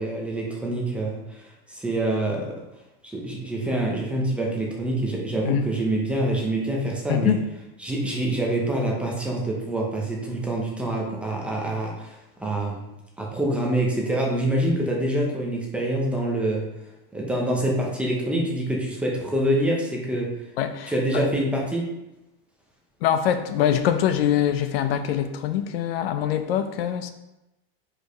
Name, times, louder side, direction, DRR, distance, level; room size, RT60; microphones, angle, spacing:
voice 1, 0.0-2.6 3.0-7.3 7.8-12.8 13.2-16.6 17.1-20.3 20.9-21.9, right 1 dB, 5° right, -2 dB, 0.6 m, -26 dB
voice 2, 20.6-21.2 23.0-27.1, left 10 dB, 75° left, 9 dB, 0.7 m, -24 dB
5.1 x 4.7 x 5.0 m, 0.95 s
supercardioid pair, 175°, 30 cm